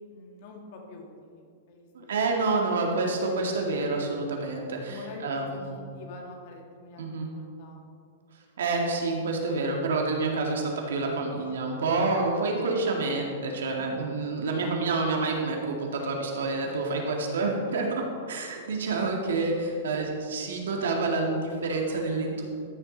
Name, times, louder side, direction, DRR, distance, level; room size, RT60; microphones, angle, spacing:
voice 1, 0.1-2.3 4.9-7.0 7.4-7.8 13.8-14.1 16.6-17.0, left 2 dB, 50° left, 1 dB, 2.0 m, -46 dB
voice 2, 1.9-5.8 7.0-7.3 8.6-22.4, right 3 dB, 90° right, 1 dB, 2.0 m, -28 dB
14.0 x 6.9 x 4.0 m, 2.3 s
supercardioid pair, 155°, 0 cm